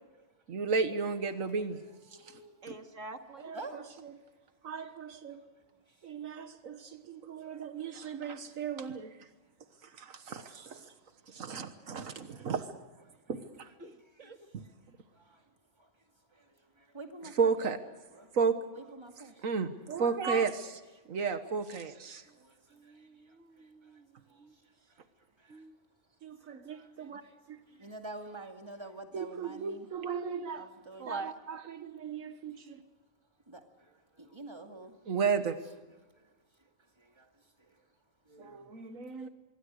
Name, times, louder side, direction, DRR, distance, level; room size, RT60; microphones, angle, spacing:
voice 1, 0.5-1.8 2.3-2.4 2.7-2.8 3.4-4.2 4.6-5.4 6.0-9.3 9.8-10.9 11.3-12.8 13.3-13.7 14.5-14.6 17.2-17.8 18.3-18.6 19.4-20.8 21.1-22.2 26.2-27.2 27.5-27.6 29.1-30.7 31.1-32.8 35.1-35.6 38.4-39.3, right 5 dB, 85° right, 1.7 m, -34 dB
voice 2, 1.8-2.6 3.5-3.8 16.9-17.5 18.2-18.3 18.7-19.4 22.4-22.5 26.7-26.9 27.8-29.9 30.5-31.2 33.5-33.6 34.2-34.9 37.2-37.3 38.3-38.7, right 2 dB, 20° right, 2.3 m, -46 dB
voice 3, 2.6-3.6 13.8-14.4 22.3-22.4 22.7-24.6 25.5-25.7 31.0-31.3, right 3 dB, 70° right, 2.3 m, -46 dB
26.0 x 23.0 x 6.5 m
omnidirectional pair, 1.4 m